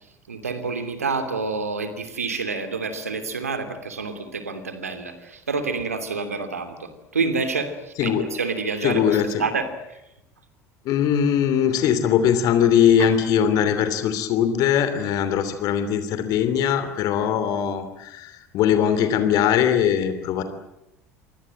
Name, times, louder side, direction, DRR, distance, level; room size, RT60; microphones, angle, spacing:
voice 1, 0.3-10.0 13.0-13.1, right 4 dB, 80° right, 9 dB, 2.9 m, -28 dB
voice 2, 8.8-9.4 10.8-20.4, left 9 dB, 50° left, 10 dB, 3.0 m, -21 dB
28.0 x 23.5 x 7.8 m, 0.85 s
figure-of-eight pair, 65°, 8 cm